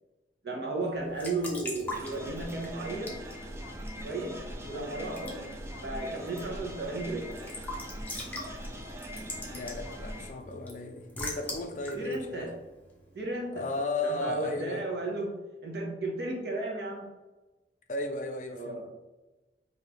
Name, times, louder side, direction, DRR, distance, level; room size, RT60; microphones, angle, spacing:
voice 1, 0.4-3.2 4.0-4.4 4.6-5.5 5.8-7.4 11.9-12.5 13.1-13.6 14.0-15.4 15.6-17.1 18.5-18.9, right 2 dB, 70° right, 0 dB, 1.0 m, -34 dB
Raindrop / Drip / Trickle dribble, 0.9-13.4, left 1 dB, 10° left, 0.8 m, -44 dB
sound 1, 1.9-10.3, equal, 15° right, 0.4 m, -41 dB
voice 2, 9.5-12.5 13.5-14.8 17.9-18.9, left 2 dB, 45° left, 6 dB, 0.4 m, -35 dB
4.8 x 2.8 x 3.0 m, 1.1 s
head